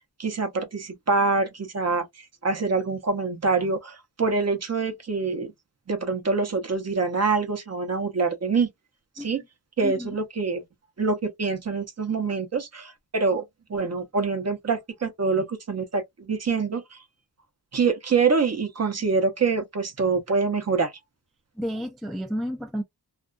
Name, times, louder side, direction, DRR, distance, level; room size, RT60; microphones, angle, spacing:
voice 1, 0.2-2.0 2.4-5.5 5.9-8.7 9.2-9.4 9.8-10.6 11.0-13.4 13.7-17.0 17.7-20.9, right 4 dB, 40° right, 0.7 m, -25 dB
voice 2, 9.8-10.1 21.6-22.8, equal, ahead, 0.4 m, -31 dB
2.4 x 2.3 x 2.3 m
wide cardioid pair, 130°, 41 cm